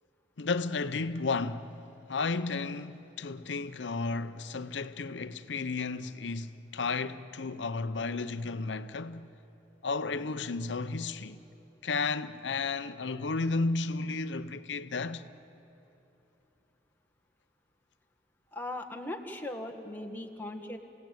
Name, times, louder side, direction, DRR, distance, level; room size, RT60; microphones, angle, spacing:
voice 1, 0.4-1.7 2.1-9.3 9.8-11.4 11.8-15.2, left 3 dB, 90° left, 0.7 m, -33 dB
voice 2, 18.5-20.8, left 1 dB, 10° left, 1.6 m, -39 dB
28.5 x 17.0 x 9.2 m
head